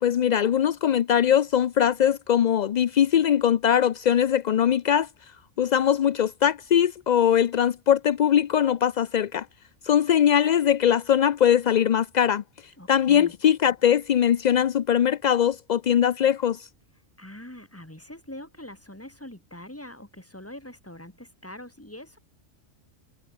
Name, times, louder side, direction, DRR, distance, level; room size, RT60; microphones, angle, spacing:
voice 1, 0.0-5.1 5.6-9.5 9.8-12.4 12.9-16.7, left 9 dB, 60° left, 0.5 m, -21 dB
voice 2, 12.8-13.3 17.2-22.2, left 1 dB, 10° left, 2.7 m, -43 dB
omnidirectional pair, 1.2 m